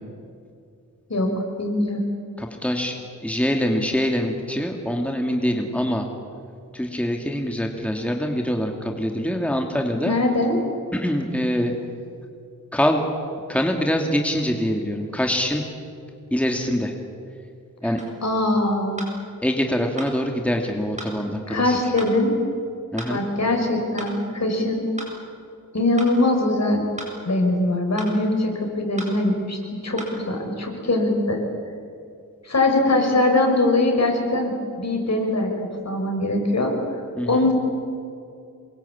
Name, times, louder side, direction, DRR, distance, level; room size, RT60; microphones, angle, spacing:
voice 1, 1.1-2.0 10.0-10.6 18.2-19.0 21.5-22.4 23.1-24.8 25.7-26.8 27.2-31.4 32.4-35.5 35.8-36.7 37.3-37.5, left 2 dB, 55° left, 2 dB, 6.5 m, -22 dB
voice 2, 2.4-3.0 3.2-6.1 6.7-10.1 10.9-11.7 12.7-13.0 13.5-15.7 16.3-16.9 17.8-18.0 19.4-21.8 22.9-23.2 37.2-37.5, equal, 5° left, 2 dB, 2.5 m, -24 dB
sound 1, 18.0-18.2 19.0-19.2 20.0-20.1 21.0-21.2 22.0-22.2 23.0-23.2 24.0-24.2 25.0-25.2 26.0-26.2 27.0-27.2 28.0-28.2 29.0-29.2 30.0-30.2, right 1 dB, 20° right, 7.9 m, -35 dB
27.5 x 23.5 x 8.7 m, 2.4 s
wide cardioid pair, 100°, 33 cm